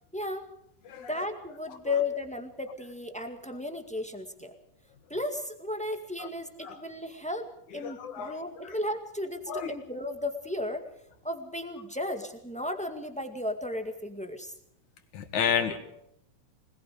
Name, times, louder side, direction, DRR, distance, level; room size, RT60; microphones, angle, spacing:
voice 1, 0.1-0.5 1.1-4.5 5.1-10.9 11.2-14.5, left 2 dB, 5° left, 6 dB, 0.9 m, -34 dB
voice 2, 7.8-8.4 8.6-8.8 9.5-9.7 15.1-15.8, left 7 dB, 65° left, 7 dB, 3.4 m, -31 dB
26.0 x 20.5 x 5.0 m, 0.76 s
omnidirectional pair, 3.8 m